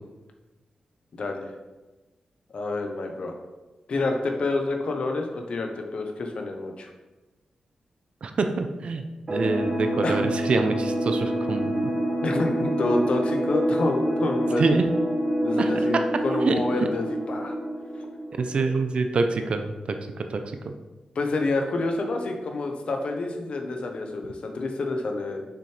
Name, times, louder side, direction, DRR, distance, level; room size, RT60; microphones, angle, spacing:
voice 1, 1.1-1.5 2.5-3.3 3.9-6.9 10.0-10.2 12.2-14.8 15.4-17.5 21.1-25.5, left 2 dB, 55° left, 3 dB, 0.9 m, -28 dB
voice 2, 8.2-9.0 9.3-11.7 14.6-14.8 15.6-16.0 16.3-16.5 18.4-20.4, right 3 dB, 55° right, 7 dB, 0.5 m, -26 dB
sound 1, 9.3-18.6, right 1 dB, 30° right, 1.2 m, -27 dB
6.8 x 6.0 x 3.3 m, 1.2 s
wide cardioid pair, 150°, 2 cm